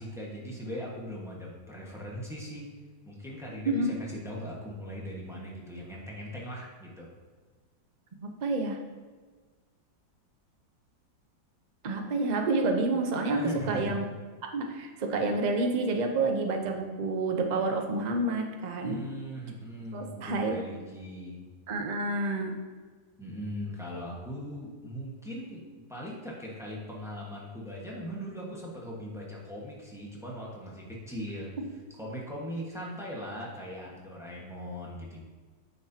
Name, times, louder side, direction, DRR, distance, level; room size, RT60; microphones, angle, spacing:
voice 1, 0.0-2.7 3.0-7.1 13.3-14.0 18.8-21.5 23.2-31.5 32.0-35.2, equal, ahead, -4 dB, 1.2 m, -39 dB
voice 2, 3.7-4.0 8.2-8.8 11.8-13.4 13.7-14.0 14.5-19.0 19.9-20.6 21.7-22.6, right 2 dB, 65° right, 3 dB, 0.4 m, -29 dB
9.1 x 6.5 x 2.8 m, 1.4 s
omnidirectional pair, 2.0 m